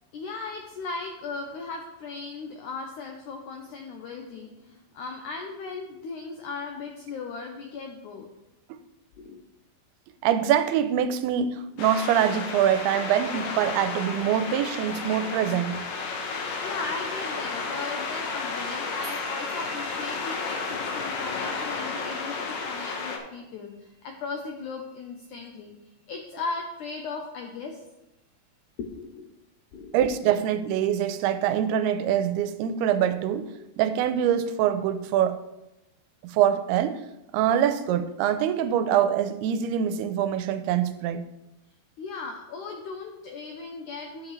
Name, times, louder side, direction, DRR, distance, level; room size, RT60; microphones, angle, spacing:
voice 1, 0.1-8.3 9.2-9.4 16.3-25.7 26.1-27.8 28.8-29.3 29.7-30.0 42.0-44.3, left 4 dB, 85° left, 3 dB, 1.7 m, -37 dB
voice 2, 10.2-15.8 29.9-33.5 33.8-35.4 36.2-37.0 37.3-41.2, right 9 dB, 85° right, 11 dB, 2.5 m, -24 dB
sound 1, 11.8-23.2, left 4 dB, 70° left, 1.8 m, -32 dB
sound 2, 19.0-25.6, right 4 dB, 50° right, 1.8 m, -51 dB
11.0 x 7.3 x 3.2 m, 0.92 s
omnidirectional pair, 4.5 m